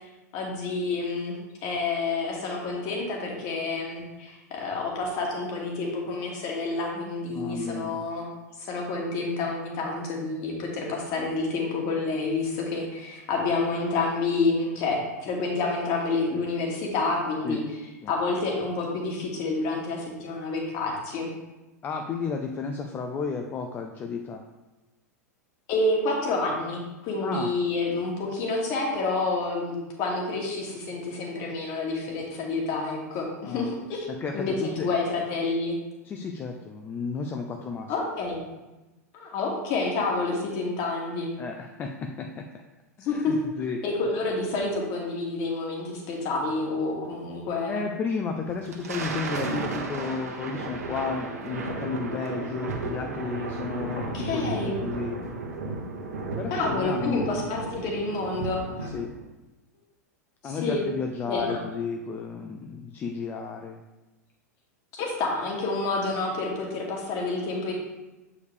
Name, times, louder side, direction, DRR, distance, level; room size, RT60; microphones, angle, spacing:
voice 1, 0.3-1.4 1.6-8.3 8.6-17.6 18.1-21.3 25.7-34.1 34.3-35.8 37.9-38.4 39.2-41.3 43.0-43.3 43.8-47.8 54.1-54.7 56.5-59.0 60.4-60.8 61.3-61.6 64.9-67.7, left 3 dB, 40° left, -1 dB, 1.8 m, -28 dB
voice 2, 7.3-8.0 17.4-17.6 18.0-18.1 21.8-24.4 27.2-27.5 33.4-33.7 34.1-34.9 36.0-37.9 41.4-42.5 43.0-43.8 47.7-55.4 56.4-57.4 58.9-59.1 60.4-63.8, left 5 dB, 25° left, 3 dB, 0.5 m, -33 dB
Thunder, 48.5-59.2, right 3 dB, 65° right, 1.1 m, -34 dB
8.0 x 4.8 x 3.3 m, 1.1 s
figure-of-eight pair, 90°, 9 cm